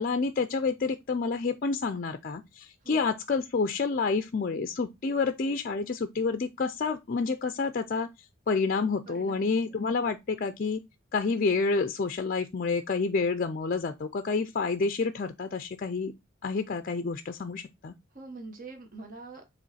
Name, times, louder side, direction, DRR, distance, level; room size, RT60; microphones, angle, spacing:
voice 1, 0.0-8.1 8.5-10.8 11.1-16.1 16.4-17.9, left 4 dB, 40° left, 0.4 m, -29 dB
voice 2, 9.1-9.9 18.1-19.4, right 3 dB, 40° right, 1.2 m, -44 dB
7.6 x 3.1 x 4.1 m
head